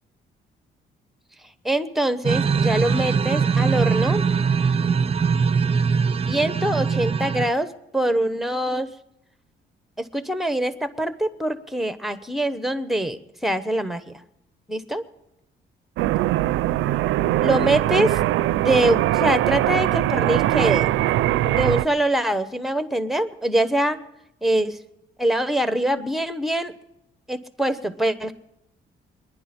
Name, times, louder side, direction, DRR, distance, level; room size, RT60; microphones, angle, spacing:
voice 1, 1.6-4.2 6.3-8.9 10.0-14.2 14.7-15.0 17.4-18.2 18.6-20.9 21.4-24.0 24.4-24.8 25.2-26.7 27.3-28.3, right 1 dB, ahead, 12 dB, 1.0 m, -24 dB
sound 1, 2.2-7.5, right 6 dB, 30° right, 0.6 m, -21 dB
sound 2, 16.0-21.9, right 14 dB, 85° right, 0.5 m, -21 dB
23.5 x 10.5 x 4.3 m, 0.84 s
cardioid pair, 90°, 20 cm